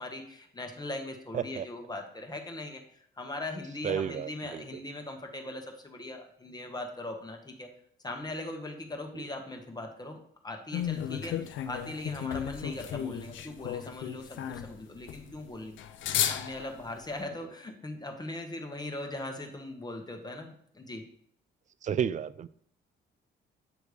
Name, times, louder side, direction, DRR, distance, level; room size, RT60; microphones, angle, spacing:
voice 1, 0.0-7.7 8.0-15.8 16.3-21.0, left 2 dB, 20° left, 3 dB, 1.1 m, -40 dB
voice 2, 1.3-1.7 3.8-4.8 9.1-9.3 21.8-22.5, right 8 dB, 40° right, 16 dB, 0.4 m, -32 dB
sound 1, 10.7-17.1, left 10 dB, 75° left, 0.6 m, -34 dB
8.0 x 3.3 x 4.9 m, 0.64 s
cardioid pair, 90°, 20 cm